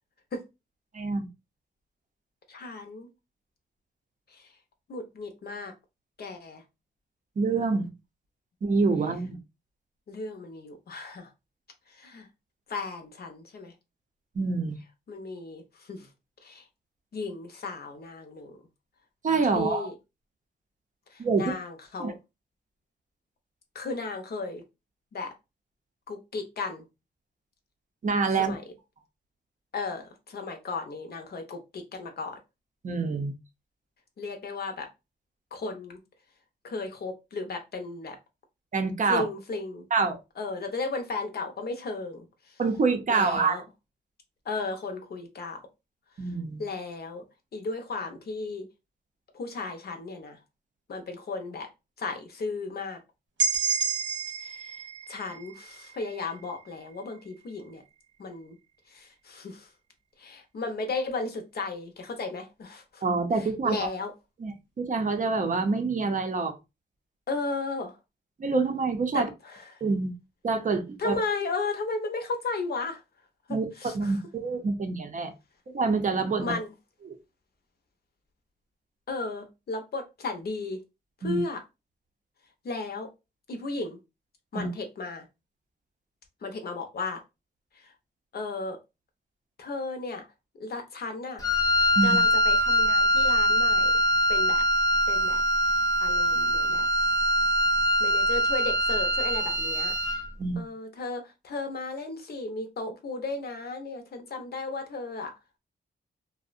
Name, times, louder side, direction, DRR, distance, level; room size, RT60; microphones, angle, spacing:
voice 1, 0.9-1.3 7.4-7.9 8.6-9.4 14.3-14.8 19.2-19.9 21.2-21.5 22.0-22.1 28.0-28.5 32.8-33.3 38.7-39.3 39.9-40.2 42.6-43.6 46.2-46.6 63.0-63.9 64.4-66.6 68.4-69.3 69.8-70.1 70.4-71.2 73.5-75.3 75.7-76.5 77.1-77.2 81.2-81.4 84.5-84.7 92.0-92.2 100.4-100.6, right 4 dB, 40° right, 0.5 m, -26 dB
voice 2, 2.5-3.1 4.3-4.5 4.9-5.7 6.2-6.6 10.1-11.3 11.9-12.3 12.7-13.7 15.1-16.1 16.4-16.6 17.1-18.5 19.5-19.9 21.1-22.2 23.7-24.6 25.1-25.3 26.1-26.8 28.4-28.6 29.7-32.4 34.2-34.9 35.5-36.0 36.6-38.2 39.1-39.8 40.4-42.5 43.1-43.6 44.5-45.6 46.6-47.2 47.5-48.6 49.3-50.4 50.9-51.7 52.0-53.0 54.4-54.7 55.1-57.8 58.2-58.6 58.9-59.7 60.2-63.0 63.4-64.1 67.3-68.0 69.1-69.6 71.0-73.0 73.5-74.1 76.4-76.7 79.1-80.8 81.2-81.6 82.6-83.1 83.5-84.0 84.5-85.3 86.4-87.2 87.8-87.9 88.3-88.8 89.6-90.2 90.6-91.4 92.0-93.9 94.3-94.6 95.1-95.4 96.0-96.9 98.0-99.9 100.6-105.3, left 3 dB, 55° left, 0.6 m, -35 dB
sound 1, 53.4-57.2, right 6 dB, 75° right, 0.8 m, -31 dB
Wind instrument woodwind instrument, 91.4-100.3, equal, 20° left, 0.4 m, -23 dB
2.6 x 2.0 x 2.4 m
cardioid pair, 95°, 19 cm